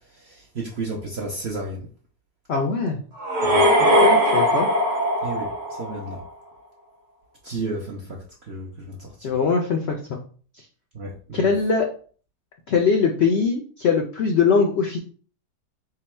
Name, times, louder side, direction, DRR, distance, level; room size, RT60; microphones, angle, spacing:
voice 1, 0.2-1.9 3.5-3.7 5.2-6.2 7.4-8.2 8.5-9.3 10.9-11.5, right 2 dB, 65° right, -2 dB, 0.6 m, -32 dB
voice 2, 2.5-3.0 4.0-4.7 9.2-10.2 11.3-11.9 12.7-15.0, left 5 dB, 80° left, 2 dB, 0.5 m, -21 dB
sound 1, 3.2-6.2, equal, 45° right, 1.1 m, -19 dB
3.8 x 2.2 x 4.2 m, 0.42 s
omnidirectional pair, 1.8 m